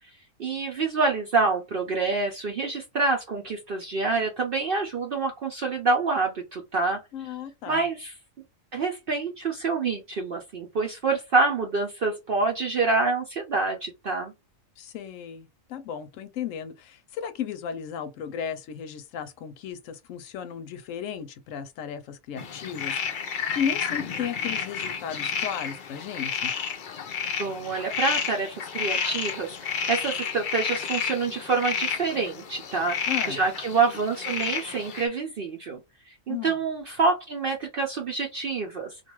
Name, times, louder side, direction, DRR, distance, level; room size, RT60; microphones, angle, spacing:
voice 1, 0.4-7.0 7.7-8.1 8.7-14.3 27.4-35.8 36.1-39.0, right 4 dB, 55° right, 0.7 m, -27 dB
voice 2, 7.1-7.8 14.8-26.5 33.1-33.4 36.3-36.6, left 8 dB, 75° left, 0.9 m, -35 dB
sound 1, 22.4-35.1, left 6 dB, 60° left, 0.5 m, -31 dB
2.5 x 2.3 x 2.9 m
omnidirectional pair, 1.4 m